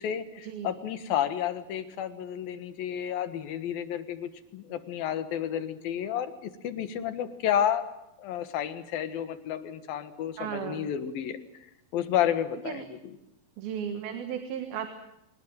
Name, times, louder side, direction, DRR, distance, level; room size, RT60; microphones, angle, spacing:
voice 1, 0.0-7.9 8.2-11.4 11.9-13.1, left 10 dB, 80° left, 10 dB, 3.3 m, -31 dB
voice 2, 10.4-10.9 12.7-12.8 13.6-14.9, right 8 dB, 90° right, 6 dB, 3.5 m, -35 dB
25.0 x 19.5 x 9.0 m, 0.86 s
omnidirectional pair, 4.2 m